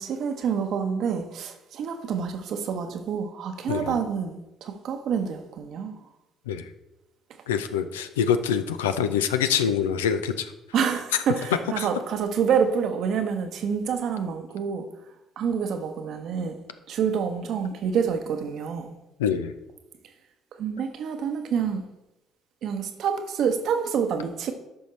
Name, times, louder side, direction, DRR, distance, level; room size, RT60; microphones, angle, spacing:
voice 1, 0.0-6.0 10.7-14.8 15.4-16.6 16.9-18.9 20.6-21.8 22.6-24.5, right 7 dB, 60° right, 6 dB, 0.9 m, -27 dB
voice 2, 7.5-10.5 11.8-11.9 19.2-19.5, left 8 dB, 80° left, 10 dB, 0.4 m, -25 dB
13.5 x 5.6 x 3.1 m, 0.98 s
figure-of-eight pair, 50°, 0 cm